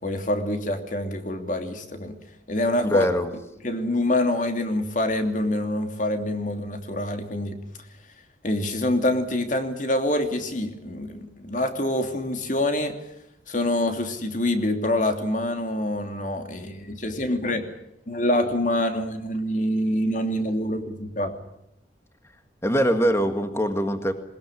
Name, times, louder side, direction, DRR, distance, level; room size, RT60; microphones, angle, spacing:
voice 1, 0.0-2.2 2.5-3.1 3.6-7.6 8.4-12.9 13.5-17.7 18.1-21.4, left 1 dB, 45° left, 6 dB, 2.9 m, -26 dB
voice 2, 2.8-3.3 22.6-24.1, equal, 15° left, 7 dB, 1.8 m, -23 dB
21.0 x 20.5 x 10.0 m, 0.83 s
head